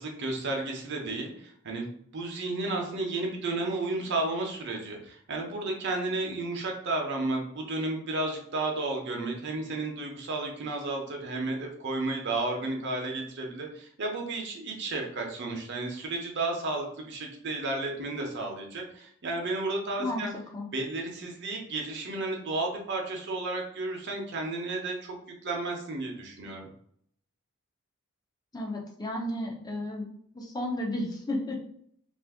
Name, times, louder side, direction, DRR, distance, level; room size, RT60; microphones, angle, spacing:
voice 1, 0.0-1.9 2.1-20.3 20.7-25.2 25.4-26.7, right 2 dB, 55° right, 1 dB, 0.7 m, -32 dB
voice 2, 28.5-30.1 30.3-31.6, left 1 dB, 20° left, -1 dB, 0.5 m, -33 dB
2.5 x 2.5 x 3.5 m, 0.66 s
head